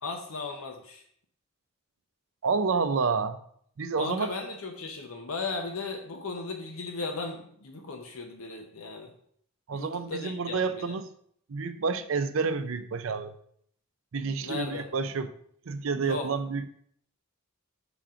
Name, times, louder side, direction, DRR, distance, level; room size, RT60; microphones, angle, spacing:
voice 1, 0.0-1.0 4.0-9.1 9.7-10.9 14.4-14.8 16.0-16.3, left 3 dB, 75° left, 3 dB, 0.8 m, -36 dB
voice 2, 2.4-3.4 3.8-4.3 9.7-11.1 11.5-13.3 14.1-15.3 15.7-16.7, right 4 dB, 65° right, 10 dB, 0.5 m, -29 dB
5.9 x 3.8 x 5.6 m, 0.65 s
head